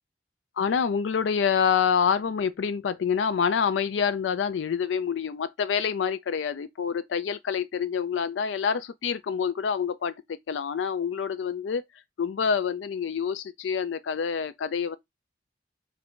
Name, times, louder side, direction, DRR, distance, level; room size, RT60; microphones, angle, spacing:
voice 1, 0.6-10.1 10.5-11.8 12.2-15.0, left 6 dB, 80° left, 0.4 m, -27 dB
3.7 x 3.4 x 3.6 m
head